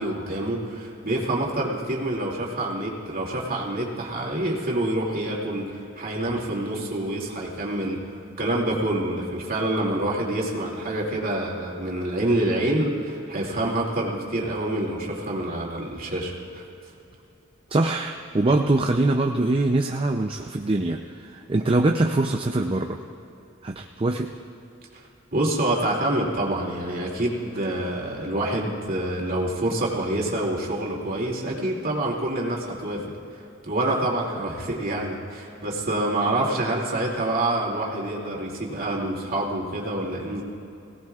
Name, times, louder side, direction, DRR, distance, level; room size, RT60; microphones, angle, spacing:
voice 1, 0.0-16.7 25.3-33.0 33.6-40.4, right 1 dB, 45° right, -2 dB, 2.6 m, -27 dB
voice 2, 17.7-23.0 23.6-24.3, right 2 dB, 25° right, 3 dB, 0.5 m, -23 dB
22.5 x 17.5 x 2.4 m, 2.9 s
head